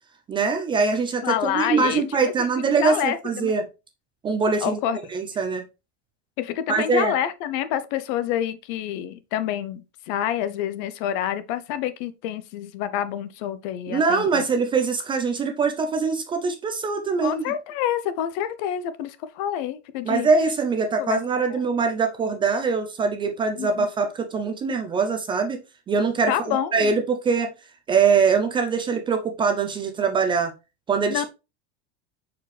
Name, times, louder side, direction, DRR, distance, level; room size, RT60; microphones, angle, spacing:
voice 1, 0.3-3.6 4.2-4.8 5.1-5.7 6.7-7.1 13.9-17.5 20.0-25.6 25.9-27.5 27.9-30.5 30.9-31.2, right 5 dB, 15° right, 0.4 m, -23 dB
voice 2, 1.2-2.0 2.7-3.5 4.6-5.0 6.4-14.4 17.2-20.3 21.0-21.2 21.5-21.6 23.6-23.9 26.3-26.9 31.1-31.2, left 10 dB, 45° left, 0.6 m, -28 dB
6.6 x 4.7 x 3.2 m
supercardioid pair, 160°, 34 cm